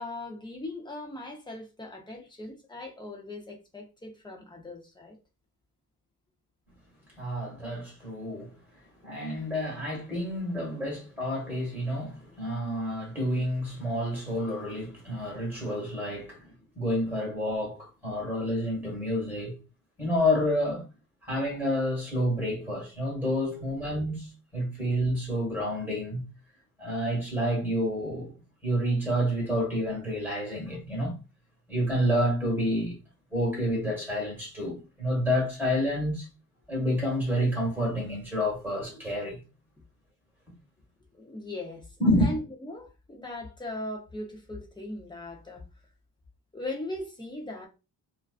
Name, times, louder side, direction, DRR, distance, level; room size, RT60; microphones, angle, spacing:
voice 1, 0.0-5.2 41.1-41.9 42.2-45.6 46.5-47.7, left 2 dB, 10° left, 0.5 m, -39 dB
voice 2, 7.2-8.5 9.0-16.4 16.7-19.6 20.0-20.8 21.2-26.2 26.8-28.3 28.6-31.2 31.7-32.9 33.3-36.3 36.7-39.4 42.0-42.3, equal, 5° right, 1.3 m, -29 dB
2.5 x 2.2 x 2.3 m
cardioid pair, 155°, 39 cm